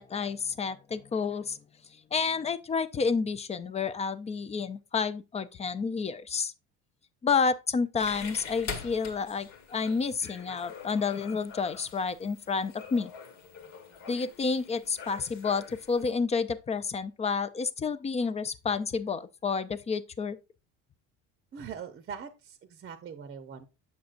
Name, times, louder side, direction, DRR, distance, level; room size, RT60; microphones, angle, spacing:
voice 1, 0.0-1.6 2.1-6.5 7.2-13.1 14.1-20.4, left 5 dB, 20° left, 0.4 m, -30 dB
sound 1, 8.0-16.1, left 5 dB, 65° left, 1.2 m, -44 dB
voice 2, 21.5-23.6, right 7 dB, 35° right, 0.7 m, -42 dB
7.0 x 6.3 x 2.5 m
cardioid pair, 105°, 31 cm